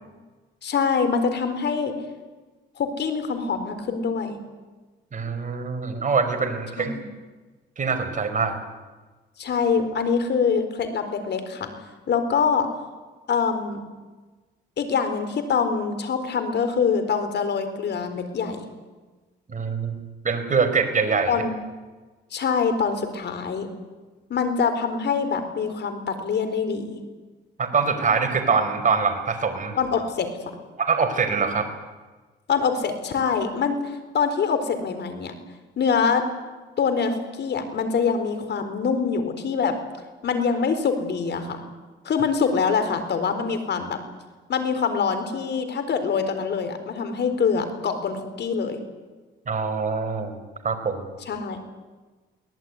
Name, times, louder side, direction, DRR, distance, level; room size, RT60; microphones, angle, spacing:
voice 1, 0.6-2.0 2.8-4.4 6.8-7.0 9.4-11.7 12.1-12.7 13.3-13.8 14.8-18.7 21.3-21.5 22.3-23.7 24.3-27.0 29.8-30.3 32.5-35.3 35.8-36.3 36.8-39.7 40.2-41.6 42.0-44.0 44.5-48.8 51.3-51.6, left 5 dB, 60° left, 8 dB, 4.3 m, -24 dB
voice 2, 5.1-6.9 7.8-8.5 19.5-20.0 20.2-21.4 27.6-29.8 30.8-31.7 49.5-50.4 50.6-51.1, right 5 dB, 40° right, 6 dB, 4.9 m, -24 dB
23.0 x 18.5 x 9.8 m, 1.3 s
cardioid pair, 90°, 20 cm